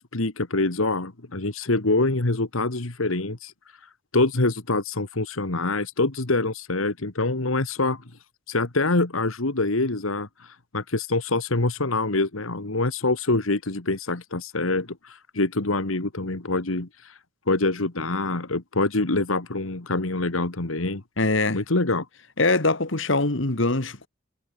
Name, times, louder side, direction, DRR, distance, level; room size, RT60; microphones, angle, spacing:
voice 1, 0.0-3.5 4.1-8.0 8.5-17.1 17.5-21.0 21.5-22.1, left 2 dB, 85° left, 1.9 m, -25 dB
voice 2, 21.2-21.6 22.4-24.1, left 2 dB, 70° left, 2.1 m, -23 dB
head